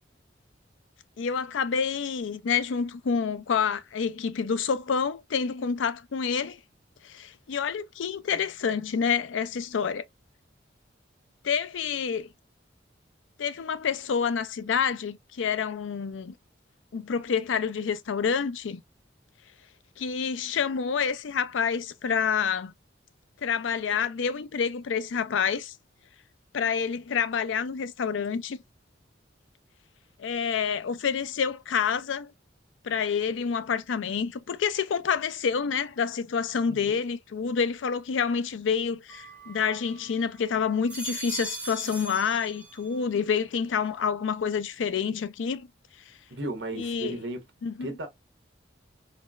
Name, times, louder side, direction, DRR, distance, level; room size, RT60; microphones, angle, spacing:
voice 1, 1.2-6.6 7.0-10.0 11.4-12.3 13.4-16.3 16.9-18.8 20.0-22.7 23.4-25.7 26.5-28.6 30.2-32.3 32.8-45.7 46.8-47.2 47.6-47.9, left 6 dB, 85° left, 0.4 m, -28 dB
voice 2, 36.7-37.0 46.3-47.4 47.8-48.1, right 1 dB, 75° right, 1.2 m, -35 dB
sound 1, 39.1-40.2 40.7-43.1 43.5-44.1, right 3 dB, 5° right, 0.7 m, -40 dB
4.1 x 2.1 x 2.3 m
head